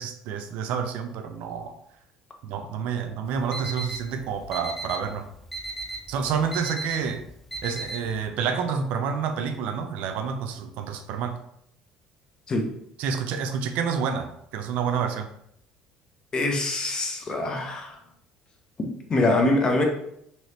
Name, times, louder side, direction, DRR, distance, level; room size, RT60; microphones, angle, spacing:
voice 1, 0.0-1.7 2.4-5.3 6.1-7.2 7.6-11.4 13.0-15.3, right 6 dB, 75° right, 7 dB, 0.4 m, -29 dB
Alarm, 3.3-8.3, right 2 dB, 5° left, 0.5 m, -37 dB
voice 2, 16.3-18.0 18.8-19.8, left 2 dB, 35° left, 2 dB, 0.8 m, -24 dB
3.1 x 3.0 x 2.9 m, 0.74 s
supercardioid pair, 90°, 2 cm